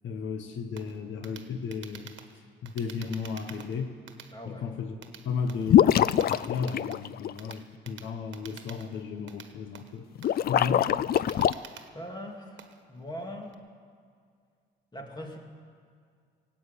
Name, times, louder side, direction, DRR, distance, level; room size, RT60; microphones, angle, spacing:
voice 1, 0.0-2.2 2.6-3.9 4.5-5.0 5.2-10.9, left 5 dB, 70° left, 7 dB, 1.1 m, -34 dB
sound 1, 0.8-13.5, right 8 dB, 70° right, 1.3 m, -49 dB
voice 2, 4.3-4.7 11.9-12.6 12.9-13.6 14.9-15.4, equal, 20° left, 2 dB, 2.5 m, -40 dB
sound 2, 5.7-7.5 10.2-11.5, left 10 dB, 50° left, 0.4 m, -23 dB
18.0 x 8.8 x 8.4 m, 2.1 s
cardioid pair, 90°, 20 cm